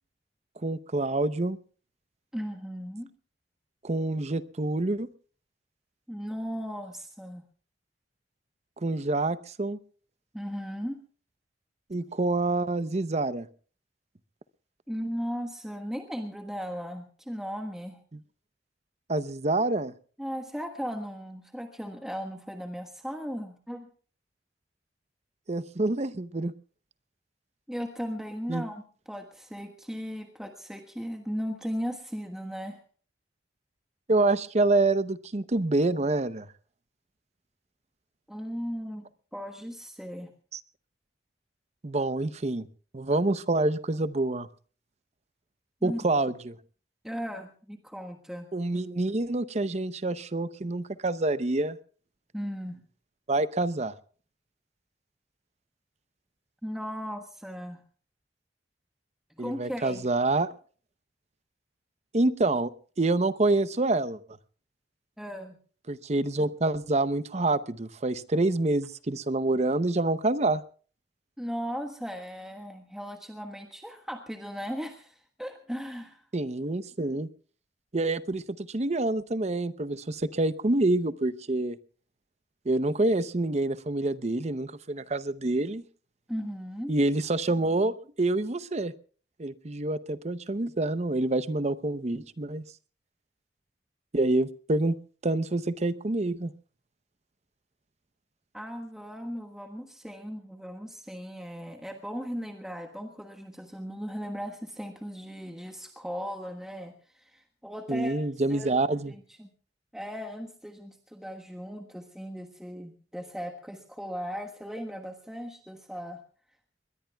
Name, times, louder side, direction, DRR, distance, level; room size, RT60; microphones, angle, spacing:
voice 1, 0.6-1.6 3.8-5.1 8.8-9.8 11.9-13.5 19.1-19.9 25.5-26.5 28.5-28.6 34.1-36.5 40.5-40.6 41.8-42.7 42.9-44.5 45.8-46.6 48.5-51.8 53.3-53.9 59.4-60.5 62.1-62.7 63.0-64.2 65.9-70.6 76.3-77.3 77.9-81.8 82.7-85.8 86.9-88.9 89.4-92.6 94.1-94.9 95.2-96.5 107.9-109.1, right 2 dB, 40° right, 14 dB, 0.7 m, -27 dB
voice 2, 2.3-3.1 6.1-7.4 10.3-11.0 14.9-18.0 20.2-23.9 27.7-32.8 38.3-39.0 39.3-40.3 45.8-46.0 47.0-48.5 52.3-52.8 56.6-57.8 59.3-60.1 65.2-65.6 71.4-76.3 86.3-86.9 98.5-108.2 108.5-108.8 109.0-109.5 109.9-116.2, equal, 5° right, 4 dB, 1.4 m, -37 dB
22.5 x 21.0 x 2.3 m, 0.41 s
head